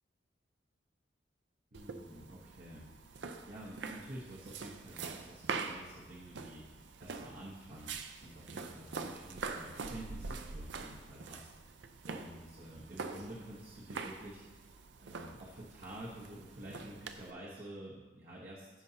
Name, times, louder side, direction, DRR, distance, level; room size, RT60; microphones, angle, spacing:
voice 1, 1.7-14.7 15.0-18.7, right 1 dB, 50° right, -5 dB, 1.2 m, -50 dB
sound 1, 1.7-17.3, right 4 dB, 75° right, 0.5 m, -45 dB
15.5 x 5.4 x 2.9 m, 1.3 s
head